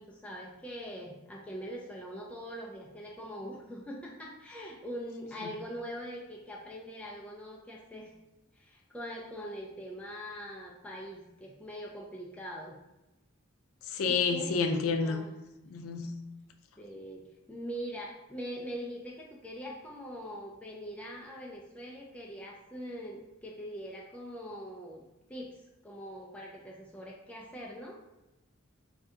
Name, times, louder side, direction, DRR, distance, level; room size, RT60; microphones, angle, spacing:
voice 1, 0.0-8.1 8.6-12.8 14.0-14.5 15.0-15.4 16.8-25.0 25.3-25.5 25.8-28.0, equal, 5° left, -3 dB, 0.3 m, -42 dB
voice 2, 13.8-15.2 15.7-16.2, left 4 dB, 85° left, 6 dB, 0.4 m, -29 dB
2.6 x 2.2 x 3.6 m, 0.98 s
head